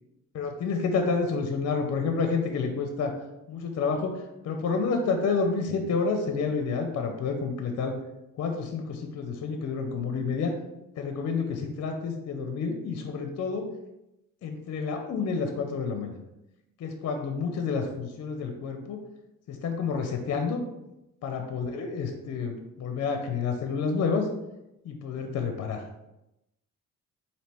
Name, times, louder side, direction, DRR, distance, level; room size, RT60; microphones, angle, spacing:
voice 1, 0.3-3.1 3.5-7.9 8.4-10.5 11.0-13.7 14.4-16.2 16.8-19.0 19.5-20.6 21.2-24.3 24.8-25.8, left 5 dB, 55° left, 4 dB, 0.6 m, -29 dB
4.1 x 2.7 x 3.4 m, 0.91 s
cardioid pair, 90°, 30 cm